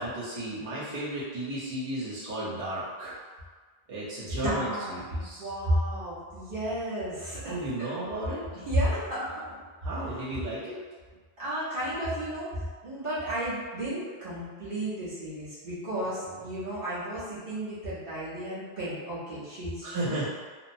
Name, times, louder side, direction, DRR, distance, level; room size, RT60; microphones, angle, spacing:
voice 1, 0.0-3.1 3.9-5.5 7.4-8.4 9.8-10.8 16.2-16.4 19.8-20.3, right 1 dB, 40° right, -10 dB, 0.7 m, -34 dB
voice 2, 4.4-7.9 8.7-9.6 11.4-20.2, right 1 dB, 60° right, -11 dB, 1.2 m, -32 dB
2.8 x 2.0 x 2.6 m, 1.5 s
omnidirectional pair, 1.0 m